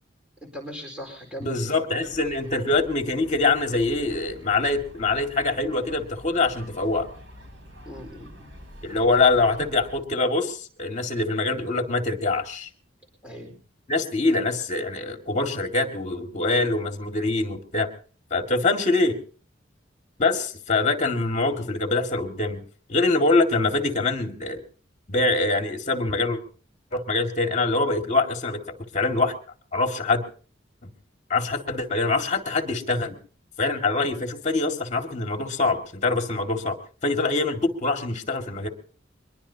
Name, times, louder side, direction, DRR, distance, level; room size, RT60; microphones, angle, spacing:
voice 1, 0.4-1.6 7.9-8.5 13.2-13.6, equal, 5° right, 1 dB, 4.5 m, -39 dB
voice 2, 1.4-7.1 8.8-12.7 13.9-17.9 18.3-19.2 20.2-22.6 22.9-24.6 25.1-26.4 26.9-29.3 29.7-30.2 31.3-33.2 33.6-38.7, left 3 dB, 40° left, 5 dB, 2.2 m, -24 dB
sound 1, 2.0-10.0, equal, 85° right, 5.6 m, -46 dB
23.5 x 21.0 x 2.9 m, 0.42 s
head